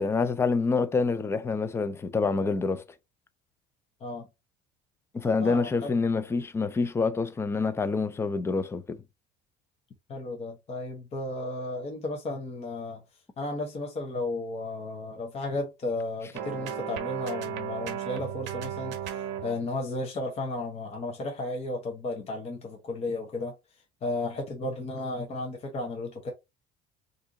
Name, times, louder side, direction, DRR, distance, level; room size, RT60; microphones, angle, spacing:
voice 1, 0.0-2.8 5.1-9.0, left 4 dB, 15° left, 0.4 m, -27 dB
voice 2, 5.4-6.0 10.1-13.0 13.4-23.5 24.0-26.3, left 2 dB, 35° left, 0.9 m, -34 dB
sound 1, 16.3-19.6, right 9 dB, 90° right, 0.8 m, -34 dB
2.7 x 2.6 x 3.7 m
cardioid pair, 125°, 18 cm